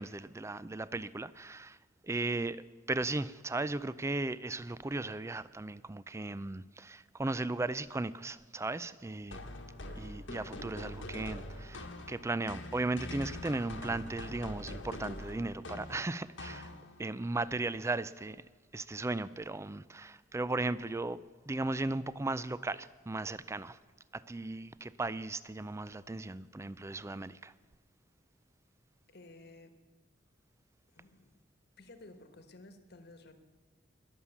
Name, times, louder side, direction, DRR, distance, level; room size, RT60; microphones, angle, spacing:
voice 1, 0.0-1.8 2.0-9.5 10.0-16.7 17.0-18.4 18.7-23.8 24.1-27.5, right 2 dB, 15° right, 0.4 m, -36 dB
sound 1, 9.3-17.1, left 1 dB, 85° left, 1.4 m, -44 dB
voice 2, 29.1-29.8 30.9-31.4 31.8-33.3, left 2 dB, 60° left, 1.3 m, -54 dB
21.0 x 7.3 x 7.1 m
head